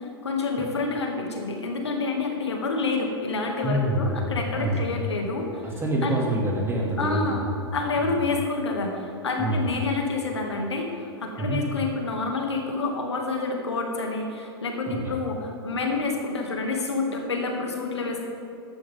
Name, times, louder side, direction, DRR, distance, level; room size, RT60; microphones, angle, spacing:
voice 1, 0.0-5.4 6.0-6.1 7.0-7.4 7.7-18.2, left 3 dB, 80° left, 1 dB, 2.2 m, -28 dB
voice 2, 3.6-4.9 5.6-7.7 8.0-8.2 9.4-9.7 11.4-11.6 14.9-15.1, right 1 dB, 15° right, -2 dB, 2.4 m, -27 dB
14.5 x 11.5 x 3.6 m, 2.8 s
figure-of-eight pair, 100°, 14 cm